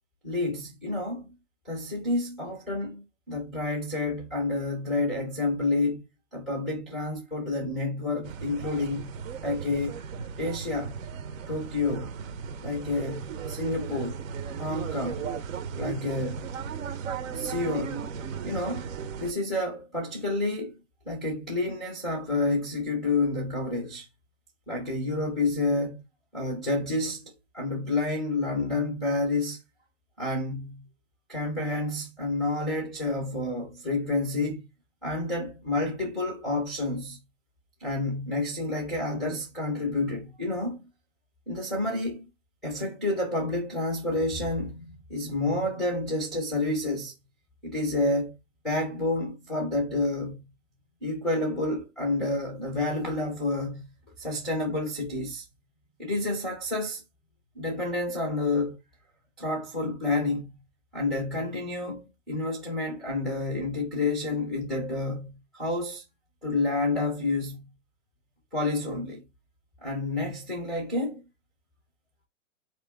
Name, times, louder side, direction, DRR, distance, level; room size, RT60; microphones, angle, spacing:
voice 1, 0.2-1.3 1.7-6.0 6.3-10.0 10.4-11.0 11.5-12.2 12.6-14.2 14.6-15.3 15.7-16.5 17.3-18.1 18.4-20.8 21.1-24.1 24.7-26.0 26.3-29.6 30.2-30.9 31.3-34.6 35.0-37.2 37.8-40.9 41.5-42.3 42.6-47.1 47.6-48.4 48.6-50.5 51.0-53.9 54.2-55.4 56.0-57.0 57.5-58.8 59.4-60.5 60.9-66.0 66.4-67.7 68.5-69.2 69.8-71.2, left 2 dB, ahead, 0.3 m, -29 dB
sound 1, 8.2-19.3, right 6 dB, 80° right, 0.9 m, -36 dB
4.4 x 2.9 x 3.4 m
hypercardioid pair, 155°, 39 cm